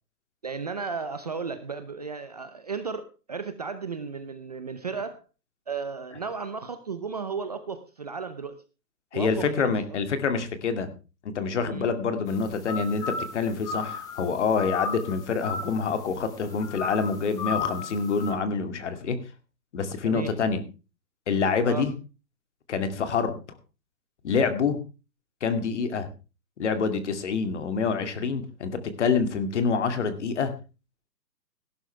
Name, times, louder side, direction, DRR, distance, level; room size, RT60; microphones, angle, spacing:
voice 1, 0.4-5.2 5.7-8.6 9.1-9.8 11.7-11.9 20.0-20.3 21.7-21.9, right 5 dB, 25° right, 10 dB, 0.7 m, -34 dB
voice 2, 9.1-10.9 11.2-19.2 19.7-20.6 21.3-21.9 22.7-23.4 24.2-24.8 25.4-26.1 26.6-30.5, left 5 dB, 45° left, 10 dB, 2.4 m, -26 dB
sound 1, 12.3-18.3, left 4 dB, 5° left, 1.4 m, -35 dB
17.5 x 11.5 x 3.3 m, 0.32 s
hypercardioid pair, 160°, 50 cm